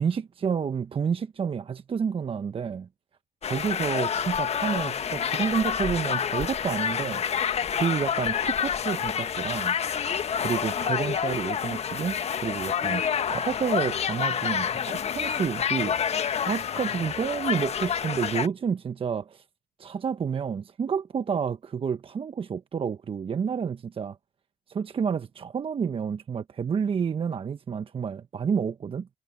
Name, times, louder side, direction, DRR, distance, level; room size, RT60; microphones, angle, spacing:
voice 1, 0.0-2.9 3.5-9.8 10.1-15.9 16.5-19.4 19.8-24.2 24.7-29.1, right 6 dB, 35° right, 1.2 m, -30 dB
sound 1, 3.4-18.5, left 8 dB, 40° left, 1.4 m, -28 dB
supercardioid pair, 80°, 16 cm